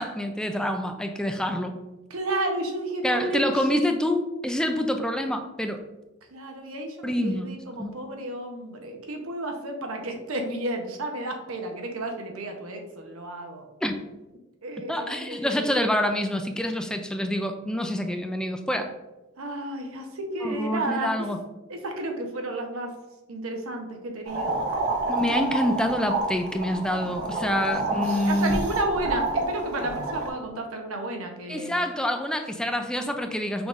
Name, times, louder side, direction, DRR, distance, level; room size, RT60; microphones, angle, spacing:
voice 1, 0.0-1.7 3.0-5.8 7.0-7.5 7.8-7.9 13.8-14.0 14.9-18.9 20.4-21.4 25.1-28.6 31.5-33.7, left 1 dB, 5° left, 6 dB, 0.3 m, -27 dB
voice 2, 2.1-3.4 3.7-3.9 6.3-13.7 14.6-15.6 19.4-21.1 21.7-22.9 23.3-24.6 27.3-31.8, right 1 dB, 85° right, 3 dB, 0.8 m, -32 dB
sound 1, 24.3-30.3, right 2 dB, 55° right, 0.9 m, -29 dB
6.0 x 3.5 x 2.5 m, 1.0 s
head